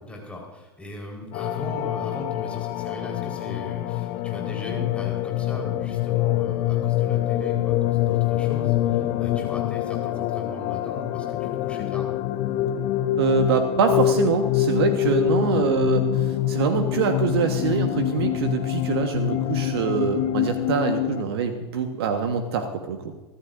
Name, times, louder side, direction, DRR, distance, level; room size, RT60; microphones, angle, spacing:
voice 1, 0.0-12.1, left 1 dB, 10° left, -1 dB, 4.2 m, -38 dB
sound 1, 1.3-21.2, left 12 dB, 45° left, 0.8 m, -25 dB
voice 2, 13.2-23.1, right 6 dB, 65° right, 6 dB, 1.3 m, -24 dB
24.5 x 14.5 x 2.6 m, 1.2 s
figure-of-eight pair, 85°, 14 cm